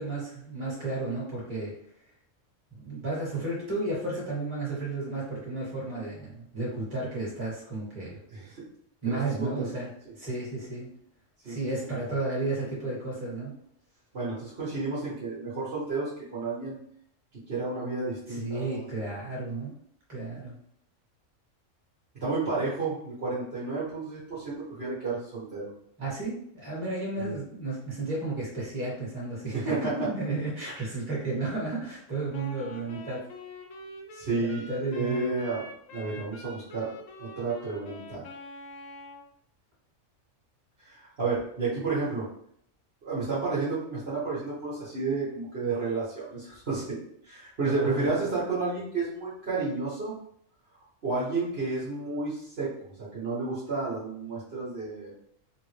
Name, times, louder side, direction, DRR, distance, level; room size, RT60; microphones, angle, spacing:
voice 1, 0.0-1.7 2.7-8.2 9.0-9.9 10.1-10.9 11.4-13.5 18.3-19.7 20.1-20.6 26.0-33.2 34.4-35.3 47.6-48.3, right 2 dB, 25° right, -6 dB, 1.4 m, -33 dB
voice 2, 9.1-9.7 11.4-11.6 14.1-16.8 17.5-18.8 22.2-25.7 27.2-27.3 29.5-29.8 34.1-35.6 35.9-36.9 37.2-38.2 40.8-42.2 43.0-47.0 47.2-50.1 51.0-55.2, right 3 dB, 55° right, -9 dB, 1.3 m, -31 dB
Wind instrument woodwind instrument, 32.3-39.3, left 2 dB, 80° left, 1.0 m, -45 dB
3.6 x 2.1 x 3.2 m, 0.66 s
omnidirectional pair, 1.4 m